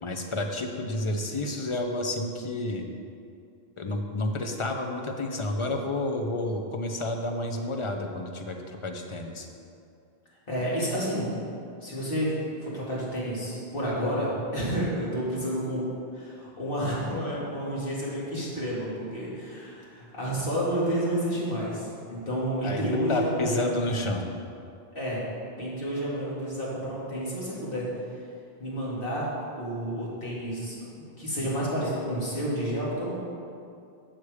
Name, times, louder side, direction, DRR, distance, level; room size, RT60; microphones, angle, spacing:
voice 1, 0.0-2.9 3.8-9.5 22.6-24.3, left 2 dB, 35° left, 4 dB, 0.6 m, -30 dB
voice 2, 10.5-11.4 11.8-15.8 16.1-23.8 24.9-25.2 25.6-27.9 28.6-33.1, equal, 60° left, -7 dB, 2.2 m, -30 dB
8.3 x 5.9 x 4.9 m, 2.5 s
omnidirectional pair, 1.0 m